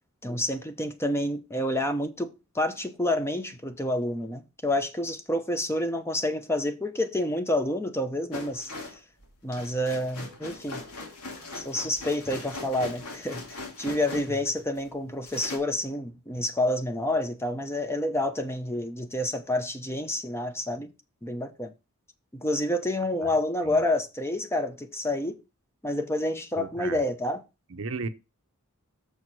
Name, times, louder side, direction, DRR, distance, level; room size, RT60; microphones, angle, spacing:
voice 1, 0.2-8.7 9.4-10.8 11.5-20.9 21.2-21.7 22.3-25.4 25.8-27.4, left 1 dB, 10° left, 0.8 m, -29 dB
sound 1, 8.3-14.9 15.3-15.6, left 2 dB, 80° left, 2.4 m, -40 dB
voice 2, 26.5-27.0 27.7-28.1, right 4 dB, 60° right, 0.7 m, -34 dB
7.0 x 4.7 x 6.1 m
head